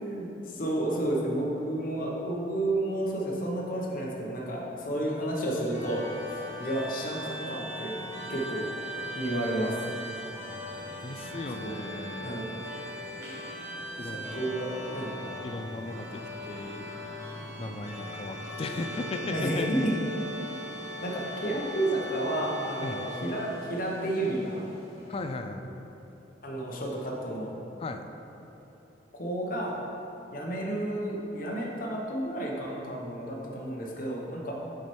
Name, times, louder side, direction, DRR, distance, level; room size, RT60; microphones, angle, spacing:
voice 1, 0.0-8.0 8.3-8.7 9.1-9.8 11.6-11.8 12.2-12.5 14.0-15.1 19.3-20.0 21.0-24.6 26.4-27.6 29.1-29.8 30.3-34.5, right 1 dB, 50° left, -3 dB, 0.9 m, -31 dB
sound 1, 5.7-25.2, equal, 15° right, 1.2 m, -39 dB
voice 2, 11.0-12.5 14.0-14.4 15.4-16.9 17.6-19.7 22.8-23.1 25.1-25.8 27.8-28.1, left 3 dB, 35° left, 7 dB, 0.3 m, -37 dB
6.1 x 4.9 x 4.4 m, 3.0 s
head